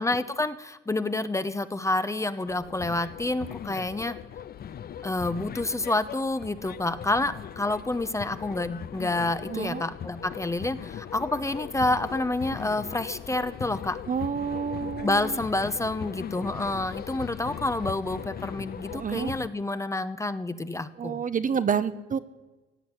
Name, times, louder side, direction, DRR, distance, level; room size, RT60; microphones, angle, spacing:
voice 1, 0.0-4.2 5.0-14.0 15.0-21.2, left 2 dB, 15° left, 12 dB, 0.9 m, -28 dB
sound 1, 2.5-19.5, left 9 dB, 50° left, 0.6 m, -39 dB
voice 2, 9.5-9.8 14.1-15.4 18.9-19.3 21.0-22.2, right 7 dB, 40° right, 12 dB, 0.9 m, -29 dB
17.0 x 8.6 x 10.0 m, 1.1 s
cardioid pair, 90°, 20 cm